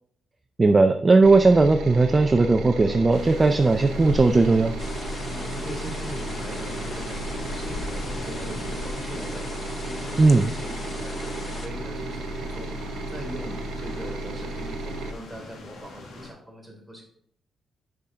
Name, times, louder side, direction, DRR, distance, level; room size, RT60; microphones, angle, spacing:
voice 1, 0.6-4.7 10.2-10.5, right 3 dB, 30° right, 7 dB, 0.4 m, -18 dB
sound 1, 1.2-15.1, right 2 dB, 85° right, 0.8 m, -34 dB
sound 2, 3.1-16.3, left 2 dB, 75° left, 1.6 m, -40 dB
sound 3, 4.8-11.7, left 3 dB, 35° left, 0.8 m, -39 dB
voice 2, 5.2-12.8 13.1-17.0, equal, 5° right, -1 dB, 3.1 m, -40 dB
6.2 x 5.8 x 3.7 m, 0.65 s
cardioid pair, 80°, 0 cm